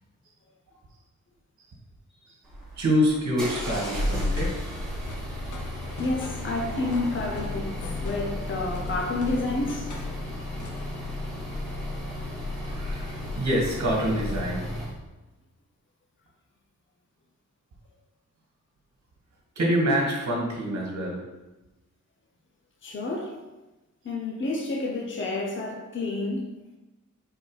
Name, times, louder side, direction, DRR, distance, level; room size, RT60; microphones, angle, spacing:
sound 1, 2.4-15.0, left 1 dB, ahead, 1.5 m, -33 dB
voice 1, 2.8-4.5 12.5-14.6 19.5-21.2, equal, 60° right, 1.7 m, -26 dB
sound 2, 3.7-4.6 5.0-6.5 6.9-8.4 8.7-10.2 10.6-10.9, left 2 dB, 75° left, 1.0 m, -42 dB
voice 2, 6.0-10.0 22.8-23.4 24.0-26.5, left 2 dB, 40° left, 0.8 m, -30 dB
4.6 x 4.6 x 4.7 m
wide cardioid pair, 155°, 30 cm